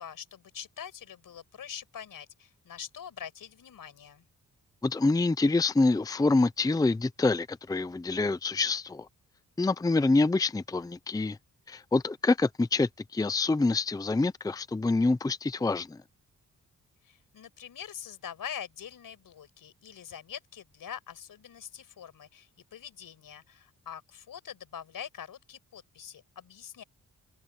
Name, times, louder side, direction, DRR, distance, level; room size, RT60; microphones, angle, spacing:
voice 1, 0.0-4.2 17.0-26.8, left 8 dB, 85° left, 5.6 m, -44 dB
voice 2, 4.8-9.1 9.6-11.4 11.7-16.0, left 3 dB, 10° left, 0.6 m, -26 dB
wide cardioid pair, 115°, 33 cm